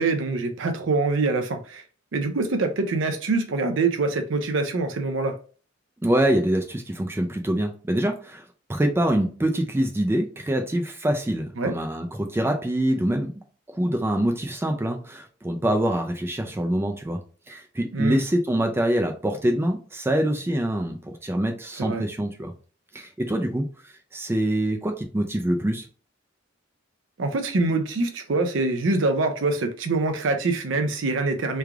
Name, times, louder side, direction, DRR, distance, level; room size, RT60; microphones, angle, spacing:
voice 1, 0.0-1.8 2.1-5.3 11.6-11.7 17.9-18.2 21.8-22.0 27.2-31.6, right 3 dB, 70° right, 0.5 m, -24 dB
voice 2, 6.0-13.3 13.7-17.2 17.5-22.5 22.9-25.9, right 1 dB, 10° right, 0.3 m, -25 dB
3.2 x 2.4 x 3.4 m
head